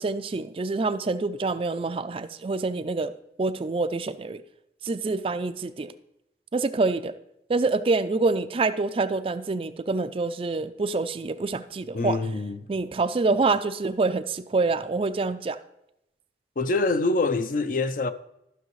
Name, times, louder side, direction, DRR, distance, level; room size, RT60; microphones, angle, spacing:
voice 1, 0.0-3.1 3.4-4.4 4.8-5.9 6.5-7.1 7.5-12.2 12.7-15.6, right 3 dB, 30° right, 0.4 m, -26 dB
voice 2, 11.9-12.6 16.6-18.1, left 3 dB, 50° left, 0.5 m, -25 dB
13.5 x 6.3 x 3.1 m
head